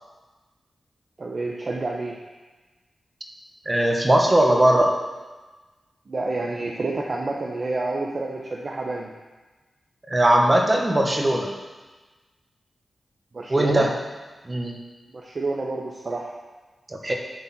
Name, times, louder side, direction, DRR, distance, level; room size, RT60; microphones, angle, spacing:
voice 1, 1.2-2.2 6.1-9.1 13.3-13.9 15.1-16.3, right 3 dB, 55° right, -1 dB, 0.9 m, -28 dB
voice 2, 3.6-4.9 10.1-11.5 13.5-13.9 14.5-14.7 16.9-17.1, right 1 dB, 30° right, 1 dB, 1.6 m, -19 dB
11.0 x 4.0 x 6.0 m, 1.3 s
cardioid pair, 40°, 0 cm